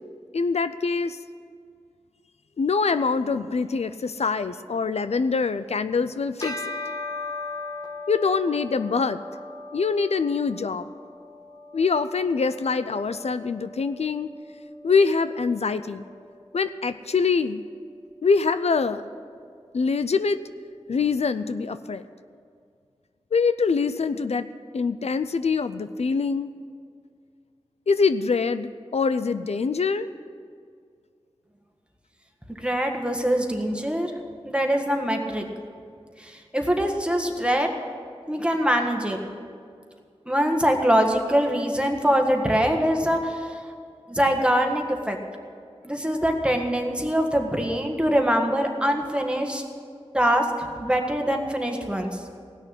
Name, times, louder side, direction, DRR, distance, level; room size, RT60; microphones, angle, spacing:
voice 1, 0.3-1.2 2.6-6.8 8.1-9.2 9.7-10.9 11.7-14.3 14.8-16.1 16.5-17.6 18.2-19.0 19.7-20.4 20.9-22.0 23.3-24.5 24.7-26.5 27.9-30.1, left 4 dB, 80° left, 12 dB, 0.5 m, -24 dB
Bell, 6.4-16.1, left 2 dB, 35° left, 1.4 m, -39 dB
voice 2, 32.6-34.1 34.4-35.4 36.2-37.7 38.3-39.2 40.2-43.6 44.1-45.2 45.8-49.6 50.1-52.2, equal, 10° right, 2 dB, 1.6 m, -23 dB
17.0 x 6.5 x 9.8 m, 2.2 s
wide cardioid pair, 70°, 11 cm